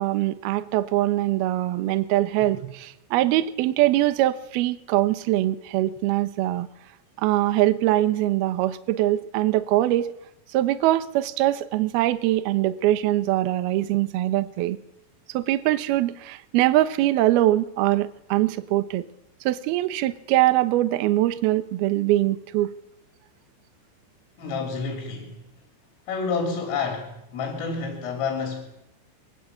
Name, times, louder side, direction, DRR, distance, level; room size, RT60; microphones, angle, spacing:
voice 1, 0.0-6.7 7.2-10.1 10.5-14.8 15.3-19.1 19.4-22.7, right 15 dB, 75° right, 13 dB, 2.4 m, -22 dB
voice 2, 24.4-25.4 26.1-28.7, left 4 dB, 80° left, 4 dB, 6.1 m, -29 dB
23.5 x 20.5 x 8.6 m, 0.84 s
omnidirectional pair, 5.8 m